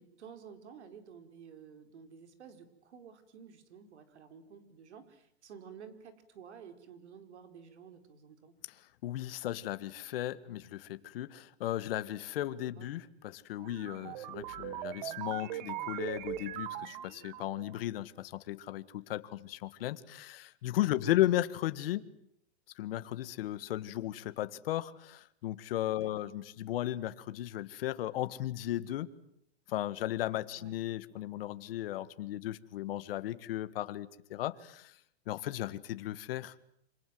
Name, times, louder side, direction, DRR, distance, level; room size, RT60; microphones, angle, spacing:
voice 1, 0.0-8.5 12.5-12.9 21.0-21.2 26.0-26.1 30.5-30.8, right 7 dB, 80° right, 4.8 m, -52 dB
voice 2, 9.0-22.1 22.8-29.1 29.7-35.0 35.3-36.5, left 14 dB, 60° left, 1.7 m, -35 dB
sound 1, 13.6-17.8, right 12 dB, 45° right, 1.5 m, -40 dB
27.5 x 26.5 x 7.8 m
supercardioid pair, 160°, 33 cm